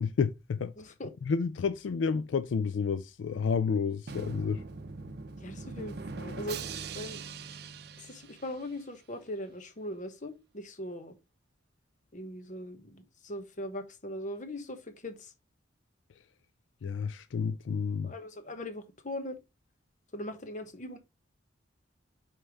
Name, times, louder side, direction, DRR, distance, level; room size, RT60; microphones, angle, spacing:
voice 1, 0.0-0.7 1.3-4.6 16.8-18.1, left 5 dB, 80° left, 0.4 m, -30 dB
voice 2, 0.8-1.1 5.4-6.6 6.9-7.2 8.0-11.2 12.1-15.3 18.0-19.4 20.1-21.0, left 1 dB, 40° left, 1.2 m, -40 dB
Drum, 4.1-8.9, right 4 dB, 55° right, 0.6 m, -42 dB
5.5 x 4.5 x 4.7 m
head